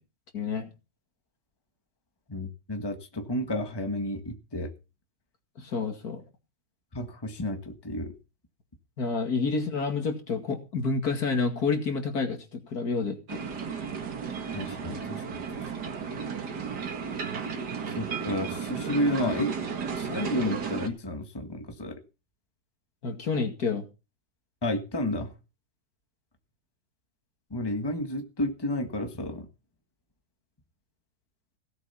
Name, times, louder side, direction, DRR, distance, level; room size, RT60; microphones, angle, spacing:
voice 1, 0.3-0.7 5.6-6.2 9.0-13.4 23.0-23.8, left 4 dB, 70° left, 6 dB, 2.7 m, -29 dB
voice 2, 2.3-4.7 6.9-8.1 14.5-15.5 18.0-19.5 20.0-22.0 24.6-25.3 27.5-29.5, left 1 dB, 15° left, 6 dB, 1.6 m, -31 dB
sound 1, 13.3-20.9, right 6 dB, 90° right, 2.4 m, -34 dB
17.0 x 7.9 x 5.7 m, 0.31 s
omnidirectional pair, 1.7 m